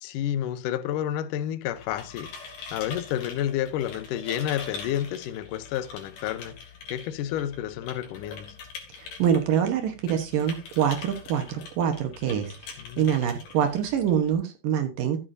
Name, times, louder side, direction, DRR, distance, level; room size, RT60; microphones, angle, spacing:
voice 1, 0.0-6.6 6.9-8.6 12.8-13.1, left 11 dB, 80° left, 1.9 m, -30 dB
sound 1, 1.7-14.3, left 5 dB, 60° left, 4.1 m, -43 dB
voice 2, 9.0-12.6 13.0-15.2, right 9 dB, 65° right, 2.4 m, -25 dB
14.0 x 9.1 x 2.6 m
omnidirectional pair, 4.7 m